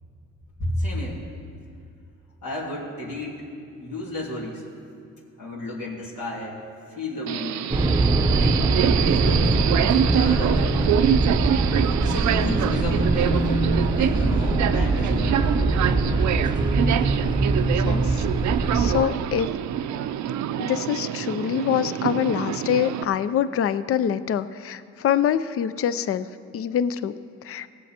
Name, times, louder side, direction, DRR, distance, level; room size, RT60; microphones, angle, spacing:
voice 1, 0.6-1.2 2.4-3.4 3.8-4.6 5.4-6.6 7.0-7.5 8.3-9.6 9.9-10.8 12.0-15.6, left 1 dB, 75° left, -7 dB, 3.0 m, -32 dB
Subway metro underground, 7.3-23.0, right 10 dB, 70° right, 0.5 m, -26 dB
sound 1, 7.7-19.0, right 2 dB, 15° right, 0.7 m, -22 dB
voice 2, 17.7-18.2 18.7-19.5 20.6-26.3 26.5-27.2 27.4-27.7, left 9 dB, 50° left, 14 dB, 0.5 m, -25 dB
17.5 x 7.6 x 4.4 m, 2.5 s
cardioid pair, 90°, 30 cm